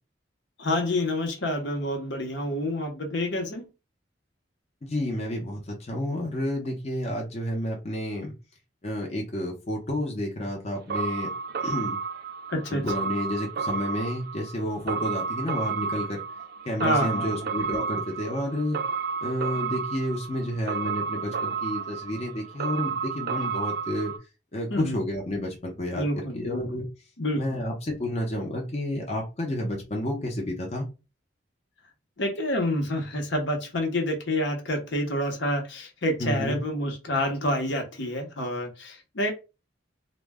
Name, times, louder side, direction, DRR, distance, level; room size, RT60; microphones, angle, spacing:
voice 1, 0.6-3.7 12.5-12.8 16.8-17.3 24.7-25.0 25.9-26.7 27.2-27.6 32.2-39.3, left 1 dB, 70° left, 2 dB, 0.8 m, -28 dB
voice 2, 4.8-8.3 8.8-11.3 11.6-12.0 12.7-16.2 16.7-18.8 19.2-24.1 24.5-26.1 26.3-26.9 27.4-30.9 36.2-36.6, left 1 dB, 35° left, 0 dB, 0.6 m, -30 dB
sound 1, 10.9-24.2, right 6 dB, 55° right, 0.4 m, -32 dB
2.1 x 2.0 x 3.4 m, 0.30 s
head